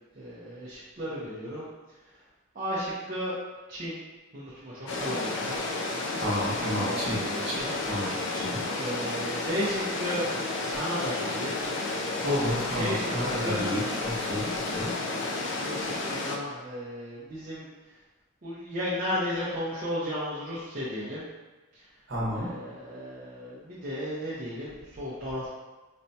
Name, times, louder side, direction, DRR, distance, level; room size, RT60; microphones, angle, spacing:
voice 1, 0.2-1.7 2.5-3.4 3.7-4.0 4.3-5.7 6.7-8.2 8.6-10.3 10.7-11.6 12.7-13.1 13.4-13.8 15.3-17.6 18.4-21.2 21.7-21.9 22.3-25.5, equal, 40° right, -10 dB, 0.6 m, -34 dB
sound 1, 4.9-16.4, left 2 dB, 55° left, 0.4 m, -31 dB
voice 2, 6.2-8.7 12.2-14.9 22.1-22.5, equal, 55° right, -6 dB, 1.0 m, -31 dB
4.2 x 2.2 x 2.7 m, 1.2 s
head